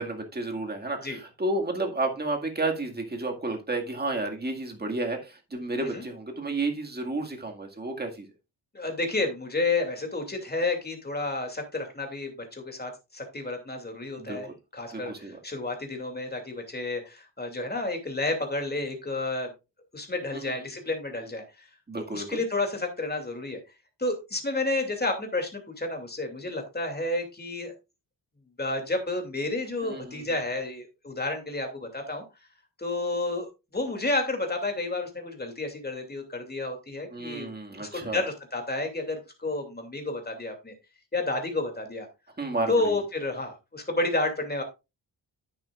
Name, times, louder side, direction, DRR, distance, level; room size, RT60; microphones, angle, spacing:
voice 1, 0.0-8.3 14.2-14.6 14.9-15.4 20.3-20.7 21.9-22.4 29.8-30.2 37.1-38.2 42.4-43.0, right 2 dB, 20° right, 2 dB, 2.0 m, -31 dB
voice 2, 8.7-19.5 19.9-21.7 22.1-23.6 24.0-27.7 28.6-32.2 32.8-40.7 41.1-42.1 42.7-44.6, left 2 dB, 20° left, 4 dB, 2.6 m, -31 dB
10.5 x 8.8 x 2.5 m, 0.26 s
wide cardioid pair, 120°, 44 cm